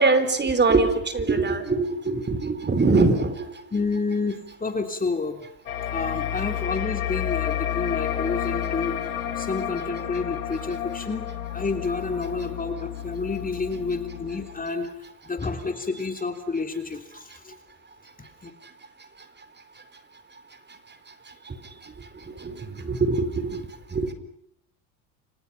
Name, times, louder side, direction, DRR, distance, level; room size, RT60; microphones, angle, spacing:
voice 1, 0.0-3.5 21.5-21.6 22.4-23.7 23.9-24.1, right 3 dB, 25° right, 10 dB, 4.4 m, -22 dB
voice 2, 3.7-5.5 5.9-9.0 9.3-11.2 11.5-14.9 15.2-17.6 18.2-18.5, left 4 dB, 20° left, 6 dB, 3.3 m, -29 dB
sound 1, 5.7-14.7, left 10 dB, 90° left, 1.9 m, -31 dB
29.5 x 27.5 x 5.9 m, 0.70 s
hypercardioid pair, 70°, 42 cm